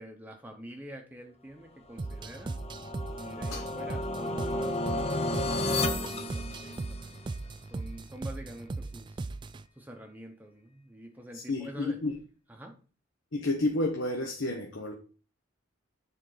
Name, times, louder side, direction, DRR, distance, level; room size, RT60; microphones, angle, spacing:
voice 1, 0.0-2.6 3.2-7.1 7.4-9.3 9.7-12.0 12.5-12.7, equal, 10° right, 3 dB, 0.8 m, -47 dB
sound 1, 2.0-7.2, left 2 dB, 30° left, 0.6 m, -33 dB
sound 2, 2.0-9.7, right 3 dB, 25° right, 0.3 m, -38 dB
voice 2, 11.3-12.1 13.3-14.9, left 2 dB, 70° left, 2 dB, 1.0 m, -30 dB
9.5 x 3.8 x 3.9 m, 0.37 s
head